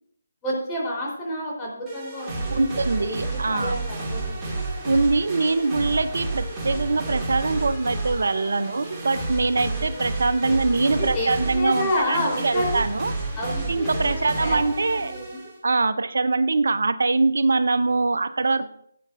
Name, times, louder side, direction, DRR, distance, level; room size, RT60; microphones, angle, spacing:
voice 1, 0.4-2.7 3.0-4.6 9.6-9.8 11.0-13.0 13.4-15.4 18.6-18.7, left 1 dB, 15° left, -4 dB, 3.7 m, -30 dB
sound 1, 1.9-15.6, right 2 dB, 15° right, 2.3 m, -31 dB
voice 2, 2.5-3.8 4.8-13.1 13.7-15.1 15.6-18.6, right 3 dB, 70° right, 12 dB, 0.6 m, -23 dB
17.0 x 8.5 x 2.6 m, 0.67 s
figure-of-eight pair, 155°, 0 cm